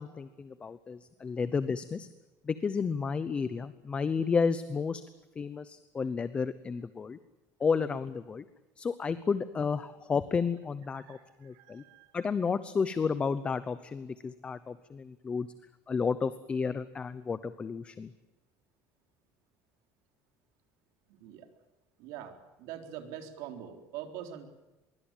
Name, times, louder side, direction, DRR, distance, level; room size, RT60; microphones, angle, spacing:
voice 1, 0.0-2.1 2.4-5.0 5.4-7.2 7.6-8.4 8.8-11.8 12.1-15.5 15.9-18.1, left 5 dB, 20° left, 14 dB, 0.8 m, -32 dB
voice 2, 10.9-11.2 11.5-12.2 21.2-21.5 22.0-24.5, right 10 dB, 75° right, 6 dB, 3.8 m, -44 dB
24.0 x 23.0 x 9.0 m, 1.0 s
cardioid pair, 170°, 6 cm